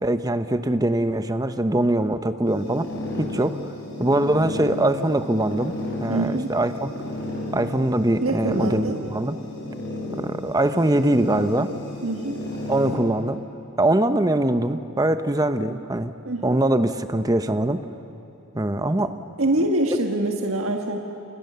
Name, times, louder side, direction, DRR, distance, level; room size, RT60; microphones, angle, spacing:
voice 1, 0.0-2.9 3.2-3.6 4.0-6.9 7.5-9.4 10.2-11.7 12.7-13.4 13.8-16.1 16.4-17.9 18.5-19.1, right 1 dB, 15° right, 10 dB, 0.8 m, -22 dB
sound 1, 2.4-12.9, left 1 dB, 55° left, 6.1 m, -33 dB
voice 2, 6.1-6.5 8.2-9.0 12.0-12.4 16.2-16.6 19.4-21.0, right 2 dB, 65° right, 2 dB, 1.7 m, -24 dB
29.0 x 27.5 x 6.9 m, 2.9 s
head